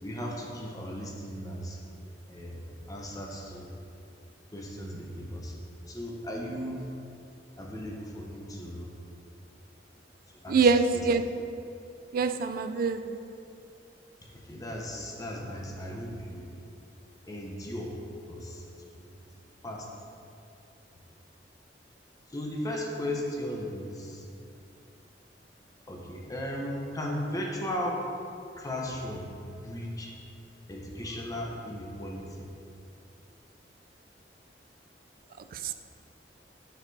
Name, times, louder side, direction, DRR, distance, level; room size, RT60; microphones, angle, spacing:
voice 1, 0.0-1.8 2.3-3.7 4.5-5.5 5.9-6.9 7.6-8.9 10.4-10.7 14.2-16.5 17.3-18.0 18.3-18.6 19.0-19.1 19.6-19.9 22.3-24.2 25.9-28.0 28.6-30.1 30.7-32.5, left 1 dB, 20° left, -1 dB, 0.8 m, -36 dB
voice 2, 10.5-11.2 12.1-13.2, right 4 dB, 55° right, 9 dB, 0.3 m, -24 dB
7.9 x 6.4 x 2.7 m, 2.5 s
head